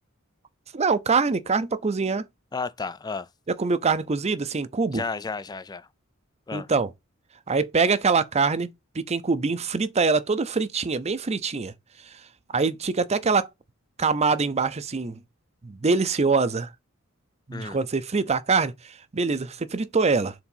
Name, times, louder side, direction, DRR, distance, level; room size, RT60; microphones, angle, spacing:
voice 1, 0.7-2.2 3.5-5.0 6.5-6.9 7.5-11.7 12.5-13.5 14.0-15.2 15.6-16.7 17.5-20.3, right 4 dB, 30° right, 0.6 m, -24 dB
voice 2, 2.5-3.3 4.9-5.9 6.5-6.7 17.5-17.8, left 4 dB, 20° left, 0.4 m, -32 dB
4.7 x 3.8 x 5.4 m
head